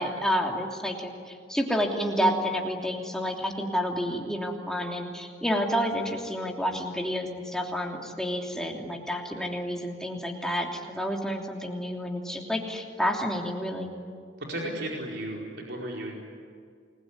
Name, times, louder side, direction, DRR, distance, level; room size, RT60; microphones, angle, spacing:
voice 1, 0.0-13.9, equal, 5° left, 0 dB, 3.0 m, -29 dB
voice 2, 14.4-16.2, right 1 dB, 60° right, -2 dB, 4.7 m, -34 dB
29.0 x 21.0 x 9.8 m, 2.1 s
head